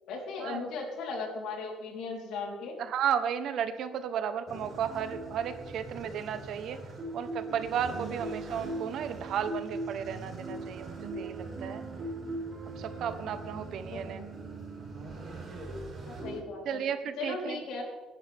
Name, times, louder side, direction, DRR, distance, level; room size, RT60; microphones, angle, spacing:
voice 1, 0.1-2.8 13.9-14.0 16.0-16.8 17.2-17.8, left 3 dB, 85° left, 0 dB, 4.0 m, -37 dB
voice 2, 2.8-6.8 7.1-11.8 12.8-14.2 14.9-15.2 16.6-17.6, right 8 dB, 60° right, 10 dB, 1.1 m, -34 dB
sound 1, 4.5-16.4, right 2 dB, 30° right, 5.0 m, -40 dB
29.0 x 11.0 x 3.6 m, 1.4 s
cardioid pair, 160°, 0 cm